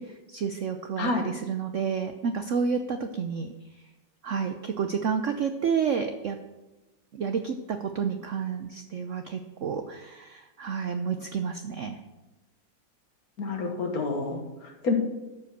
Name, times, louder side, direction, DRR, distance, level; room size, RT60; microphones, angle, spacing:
voice 1, 0.3-3.5 4.2-6.4 7.1-12.0, right 6 dB, 65° right, 7 dB, 0.7 m, -30 dB
voice 2, 1.0-1.3 13.4-14.9, left 3 dB, 55° left, 3 dB, 1.7 m, -29 dB
12.5 x 5.1 x 6.6 m, 1.1 s
omnidirectional pair, 2.0 m